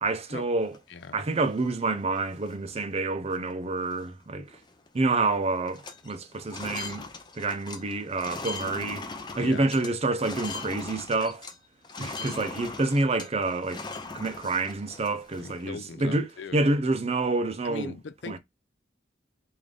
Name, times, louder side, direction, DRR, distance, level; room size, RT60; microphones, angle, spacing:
voice 1, 0.0-0.7 1.1-4.5 4.9-7.0 7.4-9.1 9.4-11.5 12.0-13.8 14.1-16.3 16.5-17.9 18.3-18.4, right 2 dB, 35° right, 0.5 m, -28 dB
sound 1, 0.6-1.7 2.2-2.3 2.5-2.9 3.3-3.5 3.8-4.9 5.1-5.4 5.6-11.6 11.8-15.7, left 4 dB, 25° left, 0.6 m, -40 dB
voice 2, 9.4-9.7 15.4-16.6 17.6-18.4, left 5 dB, 75° left, 0.5 m, -39 dB
3.7 x 2.6 x 3.2 m
head